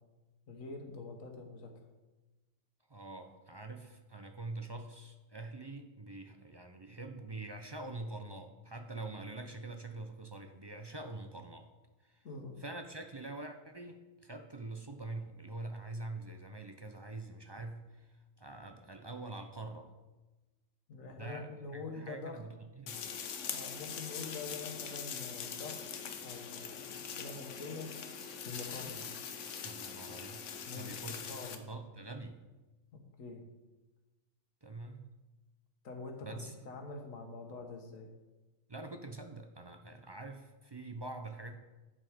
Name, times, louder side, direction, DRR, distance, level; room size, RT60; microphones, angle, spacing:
voice 1, 0.5-1.7 12.2-12.5 20.9-22.4 23.5-25.8 26.1-27.9 28.4-29.1 30.7-31.0 31.3-31.6 32.9-33.4 35.8-38.1, left 3 dB, 90° left, 3 dB, 1.7 m, -45 dB
voice 2, 2.9-11.7 12.0-12.2 12.6-19.9 21.0-23.0 29.6-30.5 30.7-32.4 34.6-35.0 36.2-36.5 38.7-41.5, right 2 dB, 30° right, 5 dB, 0.5 m, -45 dB
sound 1, 22.9-31.6, left 7 dB, 70° left, 1.1 m, -43 dB
9.3 x 7.5 x 5.1 m, 1.1 s
omnidirectional pair, 1.3 m